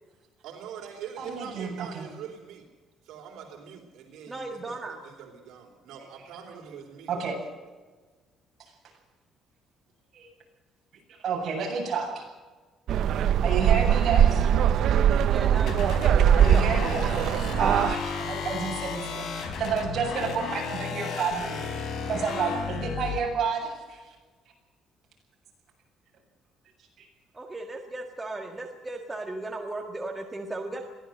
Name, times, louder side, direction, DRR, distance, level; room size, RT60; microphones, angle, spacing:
voice 1, 0.4-2.7 3.0-7.4, right 8 dB, 75° right, 3 dB, 3.8 m, -43 dB
voice 2, 1.2-2.1 7.1-7.4 8.6-8.7 10.1-10.3 11.1-12.2 13.4-14.5 16.4-17.1 17.6-21.7 22.1-24.1 27.0-27.1, right 5 dB, 40° right, -1 dB, 7.9 m, -30 dB
voice 3, 4.3-5.0 15.3-16.2 27.3-30.8, right 2 dB, 10° right, 1 dB, 1.7 m, -36 dB
sound 1, 12.9-17.9, right 9 dB, 55° right, 0.8 m, -21 dB
sound 2, 15.7-23.2, left 5 dB, 60° left, 4.4 m, -34 dB
22.5 x 15.5 x 8.0 m, 1.3 s
cardioid pair, 170°, 0 cm